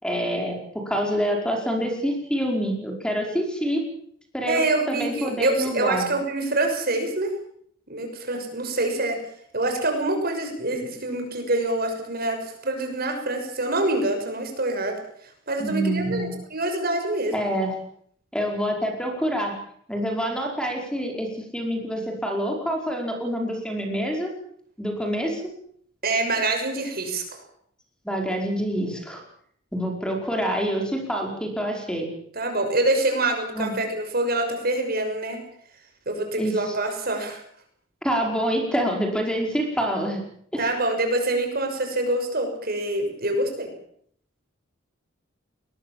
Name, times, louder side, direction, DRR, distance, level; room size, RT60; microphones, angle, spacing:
voice 1, 0.0-3.8 4.3-6.1 15.6-16.3 17.3-17.8 18.3-19.5 19.9-24.3 24.8-25.4 28.1-29.2 29.7-32.1 33.6-33.7 36.4-36.8 38.0-40.2 40.5-40.7, equal, 5° left, 2 dB, 5.1 m, -26 dB
voice 2, 4.4-7.3 7.9-9.2 9.5-14.9 15.5-17.5 26.0-27.2 32.3-35.4 36.1-37.4 40.6-43.7, right 2 dB, 50° right, 5 dB, 6.4 m, -25 dB
22.0 x 21.0 x 7.5 m, 0.63 s
head